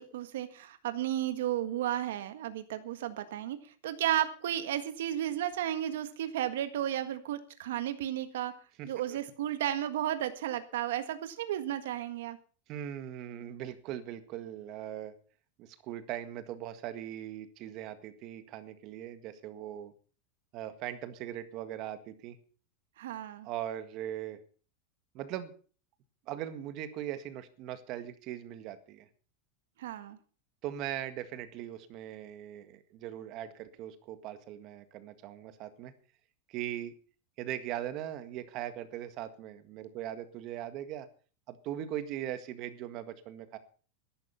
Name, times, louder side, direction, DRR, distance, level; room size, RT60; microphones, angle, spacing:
voice 1, 0.0-8.5 8.8-12.4 23.0-23.5 29.8-30.2, right 12 dB, 85° right, 9 dB, 1.6 m, -33 dB
voice 2, 12.7-15.1 15.6-19.9 20.5-22.4 23.4-24.4 25.1-25.5 26.3-29.1 30.6-35.9 36.5-36.9 37.4-41.1 41.5-43.6, right 11 dB, 40° right, 10 dB, 1.8 m, -40 dB
13.5 x 12.0 x 5.7 m, 0.40 s
supercardioid pair, 155°, 0 cm